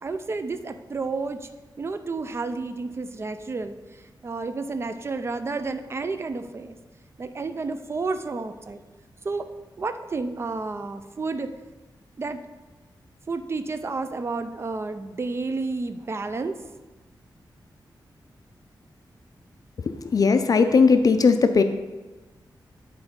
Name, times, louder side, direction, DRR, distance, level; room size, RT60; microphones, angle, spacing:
voice 1, 0.0-1.5 1.8-6.8 7.2-8.8 9.2-9.5 9.8-11.5 12.2-12.4 13.3-16.6, right 3 dB, 35° right, 9 dB, 0.4 m, -31 dB
voice 2, 19.9-21.6, left 4 dB, 50° left, 9 dB, 0.4 m, -18 dB
9.3 x 4.0 x 5.2 m, 1.2 s
wide cardioid pair, 130°, 8 cm